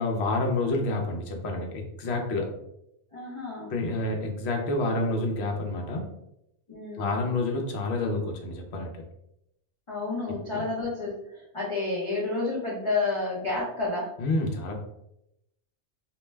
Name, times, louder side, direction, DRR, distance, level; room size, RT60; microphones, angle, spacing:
voice 1, 0.0-2.5 3.7-6.1 6.9-9.0 10.3-10.7 14.2-14.8, left 2 dB, 70° left, 2 dB, 0.9 m, -29 dB
voice 2, 3.1-3.7 6.7-7.1 9.9-14.1, left 3 dB, 40° left, -5 dB, 0.5 m, -30 dB
2.4 x 2.1 x 3.2 m, 0.81 s
omnidirectional pair, 1.2 m